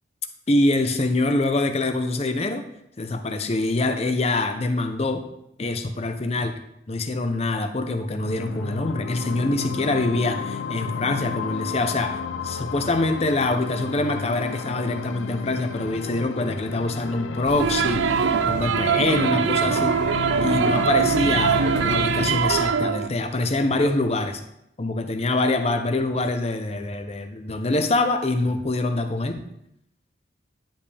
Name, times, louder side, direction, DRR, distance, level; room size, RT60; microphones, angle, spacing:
voice 1, 0.5-2.7 3.0-5.3 5.6-6.6 6.9-18.0 18.4-20.0 20.4-24.4 24.8-29.4, left 2 dB, 35° left, 7 dB, 0.6 m, -25 dB
sound 1, 8.2-22.4, left 5 dB, 90° left, 0.5 m, -32 dB
sound 2, 17.4-22.6, right 2 dB, 60° right, 0.8 m, -35 dB
sound 3, 17.6-23.1, right 7 dB, 75° right, 0.4 m, -22 dB
10.0 x 5.2 x 3.4 m, 0.78 s
head